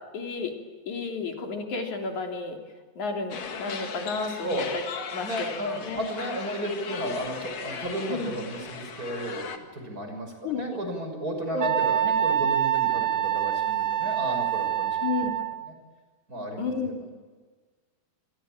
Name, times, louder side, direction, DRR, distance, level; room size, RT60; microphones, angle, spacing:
voice 1, 0.1-0.5 0.9-2.6 3.0-4.9 5.1-6.0 8.1-8.3 10.4-10.8 11.5-11.7 12.0-12.1 15.0-15.4 16.6-17.1, left 4 dB, 80° left, 3 dB, 4.7 m, -32 dB
sound 1, 3.3-9.6, left 6 dB, 60° left, 3.1 m, -37 dB
voice 2, 4.3-4.6 5.2-15.0 16.3-16.7 17.0-17.1, right 1 dB, 30° right, 4 dB, 6.4 m, -33 dB
Wind instrument woodwind instrument, 11.6-15.7, right 10 dB, 85° right, 0.5 m, -26 dB
27.5 x 23.5 x 8.9 m, 1.4 s
omnidirectional pair, 3.3 m